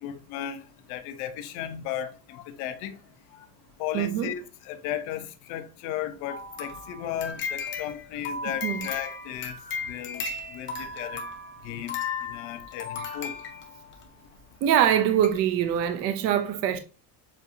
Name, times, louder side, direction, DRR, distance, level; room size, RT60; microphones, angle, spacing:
voice 1, 0.0-0.6 0.9-3.0 3.8-9.6 9.9-10.2 10.5-11.2 11.6-12.0 12.3-13.3, left 11 dB, 65° left, 0.8 m, -35 dB
voice 2, 3.9-4.3 8.6-8.9 14.6-16.8, right 10 dB, 35° right, 0.5 m, -23 dB
sound 1, 6.3-14.1 14.7-14.8 15.2-15.4 15.8-15.9, left 4 dB, 25° left, 0.9 m, -36 dB
7.4 x 2.7 x 2.6 m
cardioid pair, 165°, 44 cm